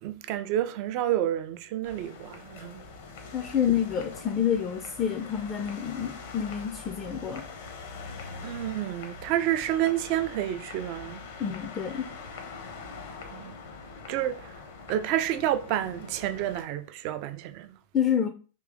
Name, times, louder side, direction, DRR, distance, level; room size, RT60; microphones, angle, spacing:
voice 1, 0.0-2.9 8.4-11.2 13.3-13.5 14.1-14.6 14.9-17.8, right 12 dB, 45° right, 0.4 m, -29 dB
sound 1, 1.8-16.6, left 4 dB, 55° left, 0.8 m, -43 dB
voice 2, 3.3-7.5 11.4-12.1 17.9-18.3, left 8 dB, 25° left, 0.5 m, -28 dB
3.7 x 3.0 x 3.5 m
figure-of-eight pair, 90°, 0 cm